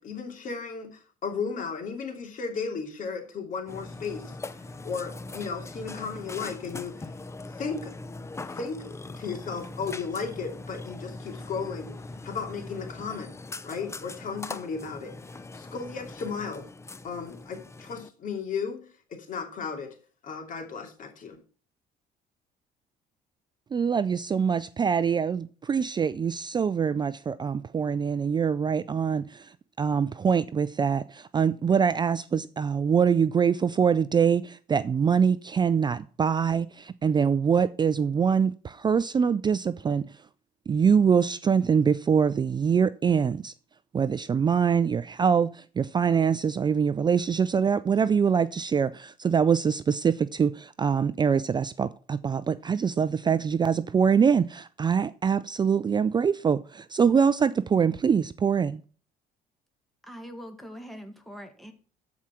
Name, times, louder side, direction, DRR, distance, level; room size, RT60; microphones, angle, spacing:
voice 1, 0.0-4.4 4.8-7.1 7.5-7.9 8.5-8.9 9.2-11.9 12.2-13.3 13.6-15.1 15.5-16.7 17.0-19.9 20.2-21.4, left 5 dB, 50° left, 2.8 m, -35 dB
Burping eructation, 3.7-18.1, left 2 dB, 15° left, 0.6 m, -41 dB
voice 2, 23.7-29.5 29.8-40.0 40.7-43.5 43.9-58.8, right 6 dB, 25° right, 0.4 m, -24 dB
voice 3, 60.0-61.7, equal, ahead, 1.8 m, -42 dB
13.5 x 4.9 x 5.8 m
cardioid pair, 110°, 17 cm